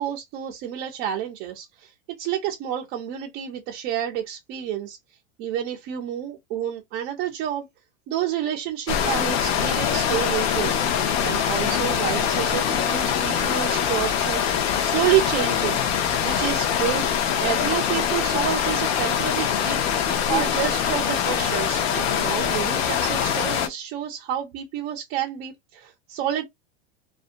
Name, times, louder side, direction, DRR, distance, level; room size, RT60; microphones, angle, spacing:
voice 1, 0.0-1.9 2.2-5.0 5.4-7.7 8.1-10.7 11.2-15.8 16.2-19.8 20.3-26.4, right 11 dB, 30° right, 0.4 m, -29 dB
sound 1, 8.9-23.7, left 8 dB, 65° left, 0.6 m, -23 dB
2.6 x 2.1 x 2.5 m
supercardioid pair, 160°, 34 cm